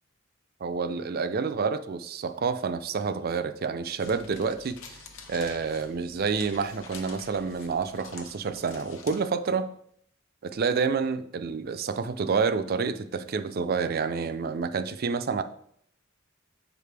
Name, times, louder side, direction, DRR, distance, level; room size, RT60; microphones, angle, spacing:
voice 1, 0.6-5.0 5.3-9.7 10.4-15.4, right 5 dB, 50° right, 11 dB, 0.4 m, -28 dB
sound 1, 4.0-9.2, left 5 dB, 80° left, 0.8 m, -47 dB
7.2 x 5.0 x 3.3 m, 0.67 s
head